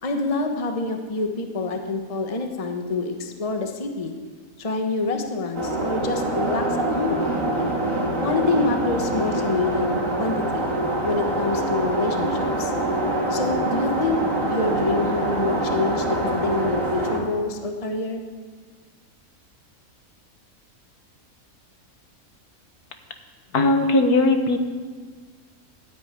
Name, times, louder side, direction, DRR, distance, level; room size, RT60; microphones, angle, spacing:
voice 1, 0.0-4.1 4.6-7.3 8.2-10.7 11.0-12.7 13.3-14.2 14.5-18.2, left 3 dB, 25° left, 5 dB, 1.2 m, -26 dB
sound 1, 5.6-17.2, right 2 dB, 60° right, 2.7 m, -25 dB
voice 2, 23.5-24.6, left 2 dB, 85° left, 7 dB, 1.8 m, -18 dB
12.0 x 10.5 x 9.4 m, 1.5 s
omnidirectional pair, 1.6 m